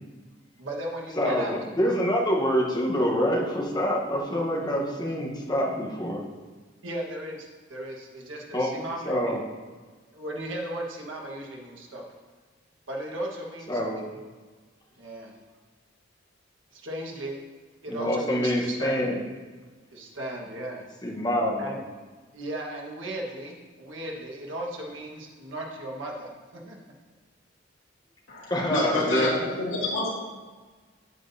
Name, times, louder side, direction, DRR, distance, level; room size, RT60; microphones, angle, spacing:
voice 1, 0.6-1.5 6.8-9.4 10.1-12.0 12.9-13.8 15.0-15.3 16.7-17.4 17.8-19.0 19.9-20.8 21.6-21.8 22.3-26.8, right 1 dB, 75° right, -1 dB, 1.5 m, -36 dB
voice 2, 1.2-6.2 8.5-8.7 9.1-9.4 13.7-14.0 17.9-19.2 21.0-21.7 28.5-29.4, equal, 20° left, -2 dB, 1.1 m, -26 dB
voice 3, 28.3-30.1, left 2 dB, 85° left, -6 dB, 2.5 m, -28 dB
8.7 x 8.1 x 2.8 m, 1.4 s
head